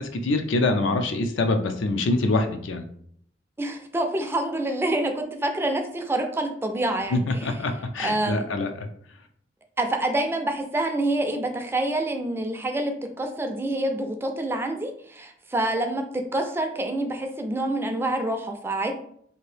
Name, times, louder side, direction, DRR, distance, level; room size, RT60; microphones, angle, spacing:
voice 1, 0.0-2.8 7.1-8.9, left 2 dB, 80° left, 6 dB, 0.4 m, -25 dB
voice 2, 3.6-7.5 8.0-8.5 9.8-12.9 13.2-18.9, right 1 dB, 15° right, 5 dB, 0.3 m, -27 dB
2.8 x 2.6 x 3.2 m, 0.66 s
head